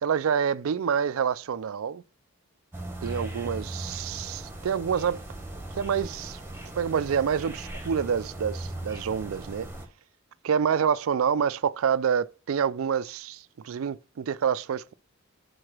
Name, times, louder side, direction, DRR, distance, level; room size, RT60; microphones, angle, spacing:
voice 1, 0.0-2.0 3.0-5.2 5.7-6.4 6.8-9.7 10.4-14.9, right 7 dB, 70° right, 0.4 m, -27 dB
sound 1, 2.7-9.9, right 1 dB, 10° right, 1.3 m, -38 dB
4.8 x 4.3 x 5.9 m
head